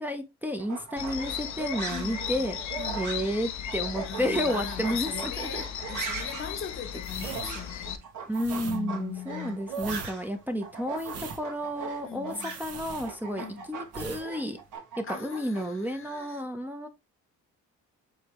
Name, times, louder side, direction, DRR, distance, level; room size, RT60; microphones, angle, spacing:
voice 1, 0.0-2.6 3.0-5.6 7.4-7.6 8.3-12.3 12.6-14.6 15.0-16.9, equal, 5° right, 0.7 m, -31 dB
sound 1, 0.6-10.4 10.6-15.6, right 6 dB, 85° right, 1.4 m, -40 dB
sound 2, 1.0-8.0, left 10 dB, 75° left, 0.6 m, -36 dB
voice 2, 1.9-2.5 2.8-3.1 4.0-8.0 8.6-9.6 12.0-12.6 13.4-13.7 15.1-16.4, left 7 dB, 45° left, 0.9 m, -40 dB
sound 3, 7.0-13.5 13.9-14.3 14.5-14.8, right 5 dB, 55° right, 0.9 m, -42 dB
4.9 x 3.3 x 3.0 m
cardioid pair, 90°, 30 cm